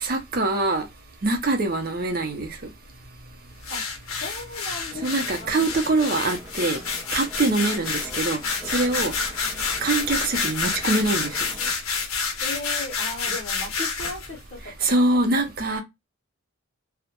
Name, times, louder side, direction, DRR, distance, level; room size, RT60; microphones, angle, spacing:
voice 1, 0.0-0.8 1.2-2.5 5.0-6.8 7.1-8.4 8.7-9.1 9.8-11.3 14.8-15.8, right 2 dB, 40° right, 0.5 m, -23 dB
sound 1, 3.6-14.3, left 5 dB, 75° left, 0.6 m, -28 dB
voice 2, 4.2-5.7 7.5-7.8 12.4-15.0 15.4-15.5, left 1 dB, 35° left, 0.7 m, -37 dB
sound 2, 4.9-11.7, right 1 dB, 5° right, 0.7 m, -43 dB
2.2 x 2.0 x 2.8 m
head